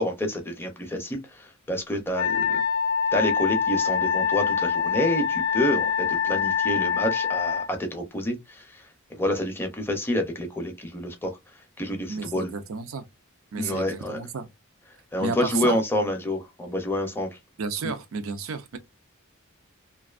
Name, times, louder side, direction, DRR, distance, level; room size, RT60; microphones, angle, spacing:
voice 1, 0.0-2.6 3.1-8.8 9.1-11.4 11.8-12.5 13.6-14.2 15.1-17.3, left 1 dB, 10° left, 0.5 m, -28 dB
Wind instrument woodwind instrument, 2.1-7.7, left 7 dB, 65° left, 0.3 m, -25 dB
voice 2, 12.1-13.0 13.5-14.5 15.2-15.8 17.6-18.8, right 5 dB, 70° right, 0.5 m, -32 dB
2.4 x 2.3 x 2.4 m
head